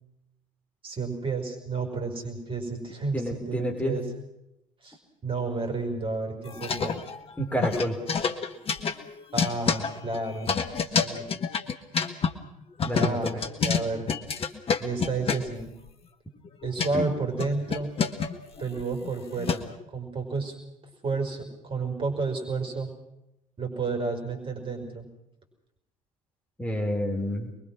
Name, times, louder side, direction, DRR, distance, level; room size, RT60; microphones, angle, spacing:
voice 1, 0.8-4.0 4.8-5.0 5.2-7.0 9.3-10.5 10.9-11.3 13.0-14.1 14.8-15.7 16.6-17.9 18.6-20.5 21.0-22.9 23.6-25.1, right 3 dB, 30° right, 4 dB, 5.2 m, -31 dB
voice 2, 3.1-4.0 7.4-8.0 12.8-13.3 16.9-17.1 26.6-27.5, equal, 10° left, 1 dB, 4.5 m, -28 dB
sound 1, 6.5-7.3 7.6-12.3 12.8-15.6 16.5-16.9 17.4-19.8, left 6 dB, 35° left, 1.7 m, -28 dB
25.0 x 22.0 x 6.2 m, 0.86 s
figure-of-eight pair, 60°, 17 cm